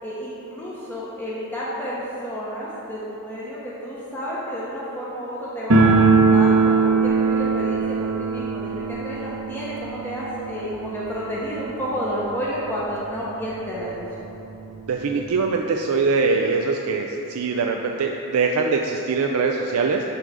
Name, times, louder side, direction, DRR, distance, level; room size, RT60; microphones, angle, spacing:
voice 1, 0.0-14.1, equal, 10° left, -7 dB, 0.9 m, -31 dB
sound 1, 5.7-12.4 12.7-12.8 13.0-13.1 13.9-14.0 14.3-15.4, right 4 dB, 60° right, 0.8 m, -21 dB
voice 2, 14.9-20.0, right 4 dB, 85° right, 2 dB, 0.4 m, -22 dB
11.0 x 3.9 x 4.8 m, 3.0 s
head